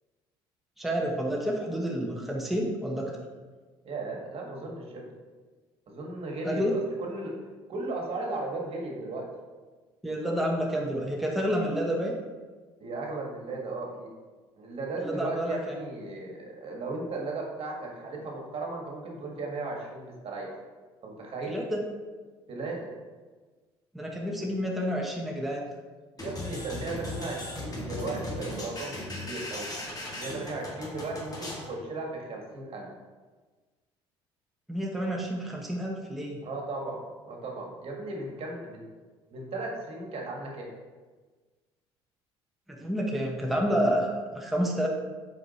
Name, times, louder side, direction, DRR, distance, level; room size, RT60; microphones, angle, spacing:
voice 1, 0.8-3.1 6.4-6.7 10.0-12.2 15.0-15.8 21.5-21.9 23.9-25.7 34.7-36.4 42.7-44.9, equal, ahead, -2 dB, 1.1 m, -29 dB
voice 2, 3.8-5.1 5.9-7.4 7.7-9.3 12.8-14.1 14.6-20.5 21.0-21.6 22.5-22.9 26.2-29.8 30.1-32.9 36.4-38.9 39.3-40.7, right 2 dB, 50° right, 0 dB, 1.6 m, -36 dB
sound 1, 26.2-31.7, left 1 dB, 30° left, 1.9 m, -37 dB
5.1 x 4.9 x 4.1 m, 1.4 s
hypercardioid pair, 65°, 13 cm